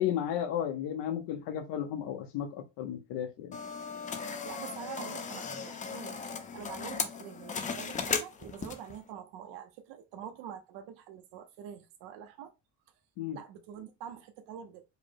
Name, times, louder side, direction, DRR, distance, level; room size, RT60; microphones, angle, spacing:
voice 1, 0.0-3.6 13.2-13.4, left 10 dB, 85° left, 0.8 m, -33 dB
sound 1, 3.5-9.0, left 5 dB, 20° left, 0.3 m, -37 dB
voice 2, 4.4-12.5 13.3-14.8, right 9 dB, 90° right, 0.7 m, -45 dB
5.0 x 2.0 x 4.5 m
cardioid pair, 170°, 41 cm